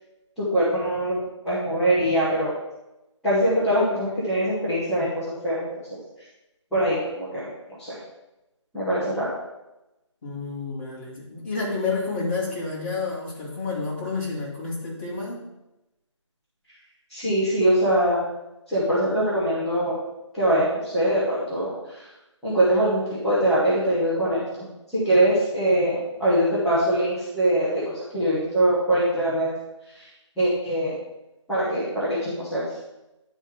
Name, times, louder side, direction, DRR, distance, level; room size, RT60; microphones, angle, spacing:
voice 1, 0.4-1.1 1.4-2.5 3.2-5.7 6.7-7.5 7.8-8.0 8.7-9.3 17.1-18.2 18.7-20.0 20.3-22.1 22.4-24.4 24.9-29.5 29.9-30.0 30.4-30.9 31.5-32.6, right 1 dB, ahead, -20 dB, 0.5 m, -23 dB
voice 2, 10.2-15.4, left 4 dB, 25° left, -7 dB, 2.3 m, -29 dB
10.5 x 4.4 x 3.6 m, 0.95 s
figure-of-eight pair, 170°, 16 cm